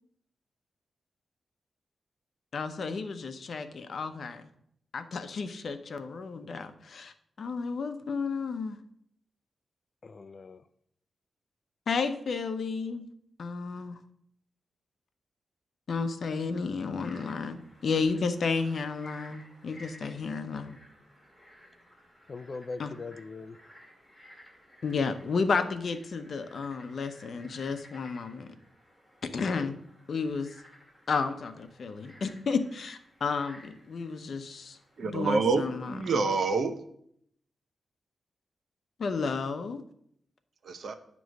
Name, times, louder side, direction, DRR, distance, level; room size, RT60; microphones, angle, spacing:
voice 1, 2.5-4.5 4.9-8.8 11.9-13.0 13.4-14.0 15.9-17.6 17.8-20.8 22.8-22.9 24.8-28.5 29.3-29.8 30.1-30.5 31.1-35.7 39.0-39.8, left 4 dB, 60° left, 9 dB, 0.7 m, -32 dB
voice 2, 10.0-10.6 22.3-23.6 29.4-29.7, left 3 dB, 40° left, 13 dB, 0.3 m, -41 dB
Frog, 16.9-35.6, left 1 dB, ahead, 1.9 m, -56 dB
voice 3, 35.0-36.8 40.6-40.9, right 4 dB, 65° right, 9 dB, 0.7 m, -27 dB
9.1 x 3.1 x 6.3 m, 0.69 s
wide cardioid pair, 105°, 0 cm